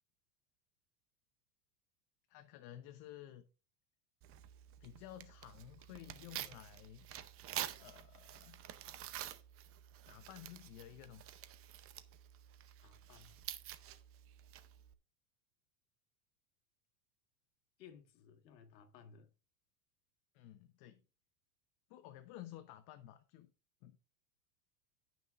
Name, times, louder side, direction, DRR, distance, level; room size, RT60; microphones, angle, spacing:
voice 1, 2.3-3.5 4.8-7.1 7.8-8.6 10.1-11.3 20.3-21.0 21.9-23.5 23.8-24.0, left 13 dB, 45° left, 0.9 m, -53 dB
Tearing, 4.2-14.9, right 12 dB, 30° right, 0.6 m, -49 dB
voice 2, 12.8-13.4 17.8-19.3, left 7 dB, 85° left, 1.8 m, -59 dB
16.5 x 6.1 x 2.5 m
supercardioid pair, 135°, 49 cm